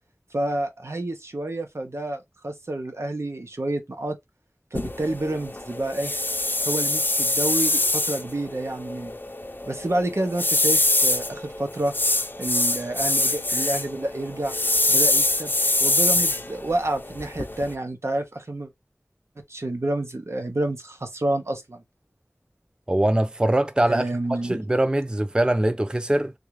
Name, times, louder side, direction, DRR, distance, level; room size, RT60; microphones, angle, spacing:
voice 1, 0.3-4.2 4.7-6.1 6.7-9.2 9.7-11.9 12.4-14.6 14.9-15.5 15.8-18.7 19.5-21.8 23.9-24.6, right 1 dB, 75° right, 0.8 m, -29 dB
sound 1, 4.7-17.7, left 2 dB, 45° left, 0.6 m, -24 dB
voice 2, 22.9-26.3, right 1 dB, 20° right, 0.3 m, -22 dB
3.5 x 2.4 x 3.1 m
wide cardioid pair, 40°, 5 cm